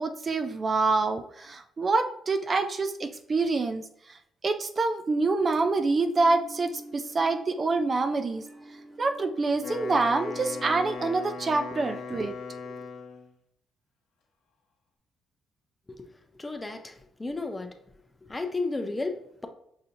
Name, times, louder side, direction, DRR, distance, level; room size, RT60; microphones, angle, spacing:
voice 1, 0.0-4.2 4.4-8.4 9.0-12.4 12.7-12.8, right 3 dB, 35° right, 7 dB, 0.4 m, -26 dB
sound 1, 5.9-11.0, right 2 dB, 15° right, 1.1 m, -46 dB
Wind instrument woodwind instrument, 9.5-13.3, left 5 dB, 85° left, 0.8 m, -38 dB
voice 2, 16.4-16.9 17.2-17.7 18.3-19.5, left 3 dB, 20° left, 6 dB, 0.5 m, -33 dB
5.6 x 2.7 x 2.6 m, 0.73 s
cardioid pair, 90°, 0 cm